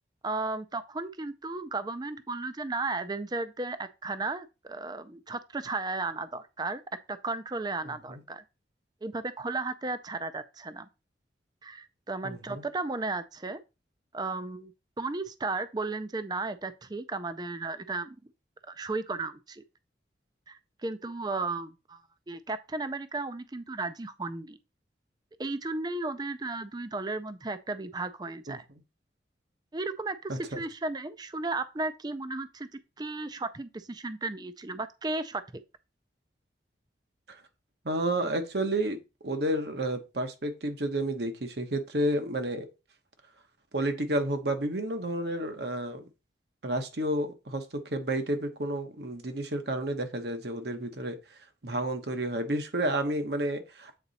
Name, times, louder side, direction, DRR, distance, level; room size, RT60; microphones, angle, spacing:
voice 1, 0.2-6.8 7.1-8.4 9.0-10.9 11.6-13.6 14.1-14.7 15.0-18.2 18.7-19.6 20.5-24.6 25.4-28.6 29.7-32.7 33.0-35.4, right 3 dB, 20° right, 0.4 m, -34 dB
voice 2, 7.8-8.2 12.2-12.6 28.5-28.6 30.3-30.6 37.3-37.4 37.8-42.7 43.7-46.0 46.6-54.0, right 1 dB, 65° right, 1.1 m, -31 dB
8.2 x 3.9 x 4.1 m
head